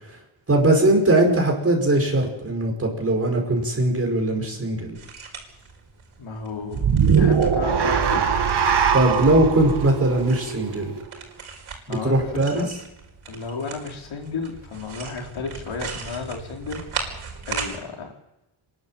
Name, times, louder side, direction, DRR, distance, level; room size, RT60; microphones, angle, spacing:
voice 1, 0.5-5.0 8.9-10.9 11.9-12.6, right 1 dB, 30° right, 2 dB, 5.2 m, -20 dB
sound 1, 4.9-17.8, right 5 dB, 80° right, 5.2 m, -39 dB
voice 2, 6.2-8.3 11.9-12.7 13.3-16.8 17.5-18.1, left 4 dB, 75° left, 1 dB, 4.4 m, -33 dB
sound 2, 6.7-11.1, right 7 dB, 55° right, 2.1 m, -21 dB
26.5 x 12.0 x 9.0 m, 0.89 s
wide cardioid pair, 125°, 47 cm